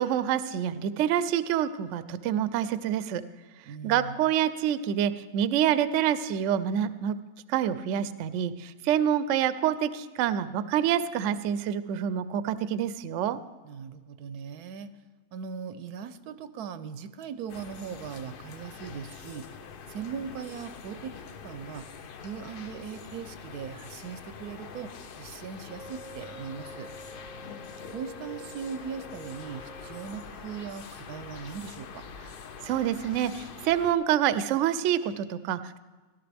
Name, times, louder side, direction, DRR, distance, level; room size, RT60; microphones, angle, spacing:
voice 1, 0.0-3.2 3.8-7.1 7.5-13.4 32.6-35.8, right 10 dB, 65° right, 14 dB, 0.8 m, -27 dB
voice 2, 3.7-4.3 13.6-14.9 15.3-19.5 19.9-21.1 21.4-21.9 22.2-26.9 27.9-32.0, right 7 dB, 90° right, 12 dB, 1.2 m, -39 dB
sound 1, 17.5-33.9, left 5 dB, 55° left, 0.6 m, -44 dB
Wind instrument woodwind instrument, 25.7-30.3, equal, 75° left, 2.2 m, -48 dB
17.5 x 12.0 x 3.4 m, 1.3 s
omnidirectional pair, 1.6 m